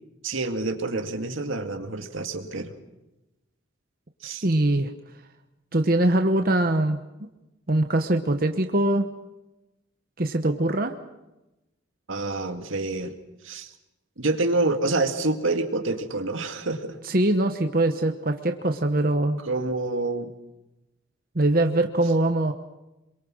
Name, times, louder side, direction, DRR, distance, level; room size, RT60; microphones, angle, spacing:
voice 1, 0.2-2.7 4.2-4.5 12.1-13.1 13.4-13.7 14.2-17.0 19.4-20.3, right 2 dB, 85° right, 6 dB, 2.1 m, -27 dB
voice 2, 4.4-4.9 5.7-7.0 7.7-9.1 10.2-10.9 17.0-19.4 21.3-22.5, right 1 dB, 45° right, 6 dB, 1.1 m, -22 dB
27.0 x 23.0 x 6.3 m, 0.98 s
head